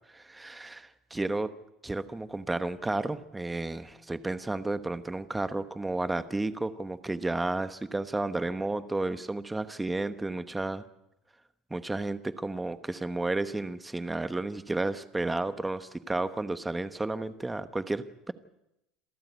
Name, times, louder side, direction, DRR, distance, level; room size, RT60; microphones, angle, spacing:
voice 1, 0.1-1.5 1.8-10.8 11.7-18.3, right 2 dB, 10° right, 12 dB, 1.0 m, -32 dB
27.5 x 14.0 x 8.1 m, 0.88 s
cardioid pair, 140°, 0 cm